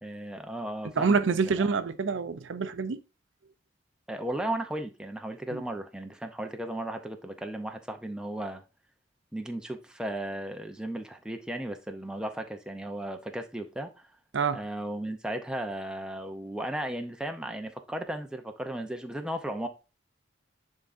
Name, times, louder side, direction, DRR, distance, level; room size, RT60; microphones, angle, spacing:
voice 1, 0.0-1.7 4.1-8.6 9.3-14.1 14.5-19.7, right 1 dB, 5° right, 0.6 m, -35 dB
voice 2, 1.0-3.0 5.5-5.6 14.3-14.6, right 5 dB, 75° right, 0.5 m, -26 dB
10.0 x 3.7 x 2.6 m
head